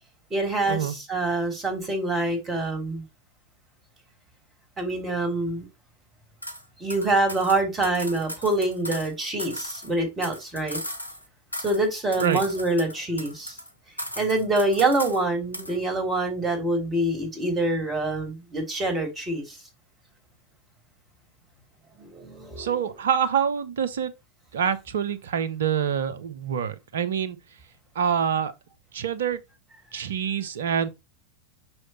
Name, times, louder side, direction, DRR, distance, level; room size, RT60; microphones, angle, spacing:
voice 1, 0.3-3.0 4.8-5.6 6.8-10.8 11.6-13.6 14.2-19.6 22.0-22.9, right 2 dB, 20° right, 3.0 m, -26 dB
sound 1, 6.4-6.6 6.9-9.1 9.4-11.2 11.5-11.9 12.1-13.7 14.0-15.2 15.5-15.8, equal, 90° left, 1.1 m, -37 dB
voice 2, 22.6-24.1 24.5-27.4 27.9-28.5 28.9-29.4 29.9-30.9, right 8 dB, 60° right, 0.9 m, -26 dB
6.3 x 6.3 x 3.0 m
figure-of-eight pair, 90°, 0 cm